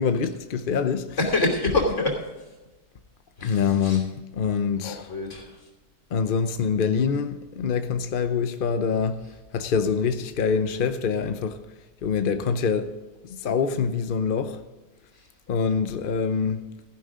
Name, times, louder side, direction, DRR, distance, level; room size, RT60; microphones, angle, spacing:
voice 1, 0.0-1.2 3.4-5.1 6.1-9.2 9.5-11.6 12.0-12.9 13.3-14.6 15.5-16.6, left 6 dB, 60° left, 0.5 m, -25 dB
voice 2, 1.2-2.1 3.4-4.0 4.8-5.5, left 2 dB, 40° left, 3.1 m, -26 dB
14.5 x 11.0 x 3.7 m
omnidirectional pair, 1.8 m